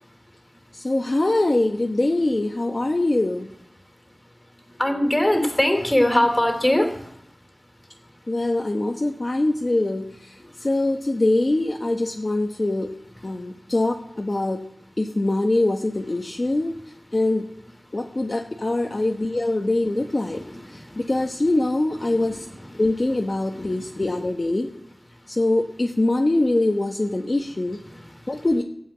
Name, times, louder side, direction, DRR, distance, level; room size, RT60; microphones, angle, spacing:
voice 1, 0.8-3.5 8.3-10.0 10.6-12.9 13.2-14.6 15.0-16.7 17.1-17.4 17.9-20.4 21.0-22.4 22.8-24.7 25.3-27.8 28.3-28.6, left 2 dB, 45° left, 1 dB, 1.2 m, -23 dB
voice 2, 4.8-6.9 20.4-20.6 22.1-22.4 23.5-23.8, left 1 dB, 20° left, 5 dB, 2.9 m, -21 dB
15.5 x 7.8 x 8.8 m, 0.73 s
wide cardioid pair, 65°, 0 cm